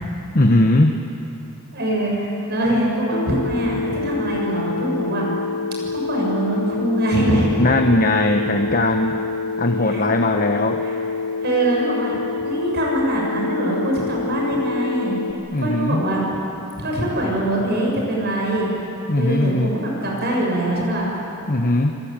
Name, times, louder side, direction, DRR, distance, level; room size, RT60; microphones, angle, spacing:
voice 1, 0.3-1.0 7.6-9.2 9.6-10.8 15.5-16.0 19.1-19.8 21.5-21.9, left 1 dB, 40° left, 4 dB, 1.2 m, -19 dB
voice 2, 1.7-5.3 5.9-7.5 9.8-10.1 10.8-10.9 11.4-12.1 12.4-15.2 15.6-16.2 16.8-18.7 19.1-21.1, right 1 dB, 45° right, -2 dB, 7.1 m, -23 dB
Telephone, 3.1-15.3, left 4 dB, 75° left, 1.9 m, -27 dB
27.0 x 23.0 x 9.1 m, 2.8 s
head